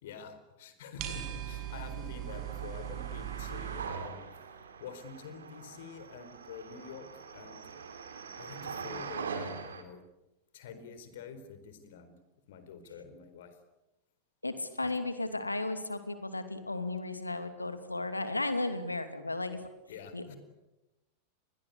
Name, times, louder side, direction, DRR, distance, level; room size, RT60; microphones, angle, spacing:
voice 1, 0.0-4.3 4.8-7.7 8.4-10.0 10.5-12.1 12.5-13.6 14.8-14.9 19.9-20.4, left 6 dB, 55° left, 11 dB, 4.2 m, -47 dB
sound 1, 1.0-3.9, right 11 dB, 40° right, 6.2 m, -39 dB
sound 2, 2.3-9.8, right 5 dB, 70° right, 3.0 m, -43 dB
voice 2, 14.4-19.6 20.1-20.3, left 2 dB, 80° left, 10 dB, 2.6 m, -34 dB
27.5 x 22.0 x 8.3 m, 0.97 s
figure-of-eight pair, 90°, 0 cm